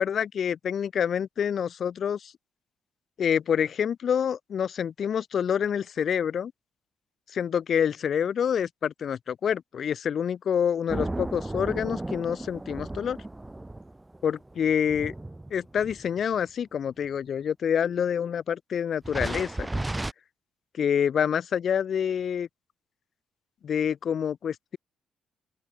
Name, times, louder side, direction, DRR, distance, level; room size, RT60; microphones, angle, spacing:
voice 1, 0.0-2.3 3.2-6.5 7.3-13.2 14.2-15.1 15.5-19.7 20.7-22.5 23.6-24.8, left 8 dB, 55° left, 2.7 m, -27 dB
sound 1, 10.9-16.4 17.0-17.1 19.0-20.1, right 2 dB, 15° right, 1.3 m, -34 dB
open air
cardioid pair, 90°, 0 cm